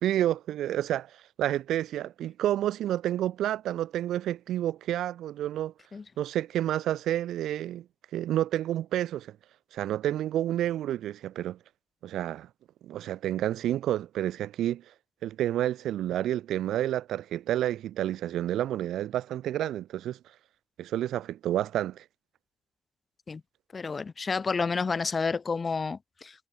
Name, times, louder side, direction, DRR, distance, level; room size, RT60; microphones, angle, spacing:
voice 1, 0.0-5.7 6.2-7.8 8.1-9.4 9.7-11.6 12.0-12.5 12.8-14.8 15.2-20.2 20.8-22.0, right 12 dB, 80° right, 1.4 m, -29 dB
voice 2, 23.7-26.5, left 4 dB, 35° left, 0.7 m, -30 dB
cardioid pair, 90°, 0 cm